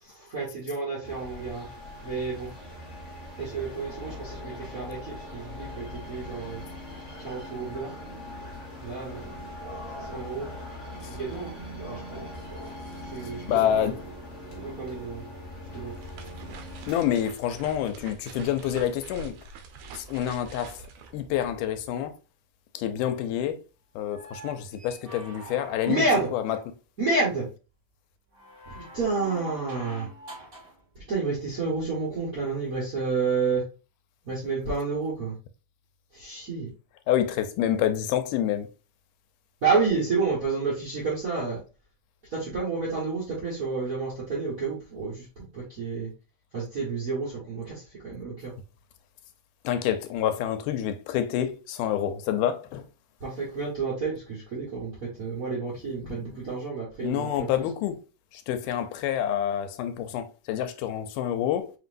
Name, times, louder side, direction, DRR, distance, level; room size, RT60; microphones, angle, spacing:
voice 1, 0.0-1.7 2.0-2.5 3.4-6.6 7.2-7.9 8.8-9.4 10.0-10.5 11.1-11.6 11.9-12.2 13.1-13.9 14.5-15.3 15.7-15.9 25.9-26.3 27.0-27.5 28.7-30.1 30.9-33.7 34.2-35.3 36.1-36.7 39.6-41.6 42.3-46.1 46.5-48.5 53.2-57.5, right 4 dB, 55° right, 0.9 m, -30 dB
sound 1, 1.0-16.9, left 1 dB, 45° left, 0.4 m, -40 dB
voice 2, 13.5-14.0 16.9-19.4 19.9-20.8 21.1-22.2 22.7-23.6 24.0-26.1 26.3-26.6 37.1-38.7 49.6-52.8 56.0-56.4 57.0-58.0 58.3-61.7, left 10 dB, 85° left, 2.2 m, -28 dB
sound 2, 15.7-22.0, right 4 dB, 80° right, 2.2 m, -45 dB
sound 3, 24.0-26.5 28.3-30.8 32.5-32.6, right 1 dB, 30° right, 2.0 m, -45 dB
5.7 x 3.0 x 2.5 m
omnidirectional pair, 3.6 m